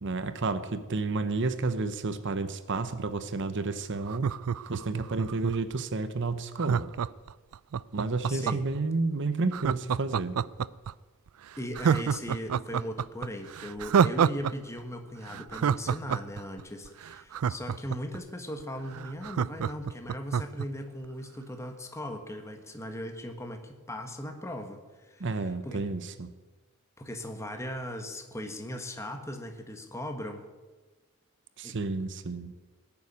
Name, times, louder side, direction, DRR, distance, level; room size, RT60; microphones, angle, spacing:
voice 1, 0.0-4.3 4.7-6.9 7.9-10.4 25.2-26.3 31.6-32.5, right 3 dB, 55° right, 11 dB, 0.8 m, -31 dB
Laughter, 4.0-5.7 6.6-8.8 9.5-10.9 11.3-11.4 11.7-14.5 14.8-14.9 15.3-18.2 18.6-18.7 18.9-20.7 21.0-21.1, right 7 dB, 75° right, 0.4 m, -27 dB
voice 2, 8.3-8.7 11.6-25.8 27.0-30.4 31.6-31.7, equal, 15° left, 5 dB, 1.3 m, -38 dB
18.0 x 7.1 x 9.6 m, 1.3 s
head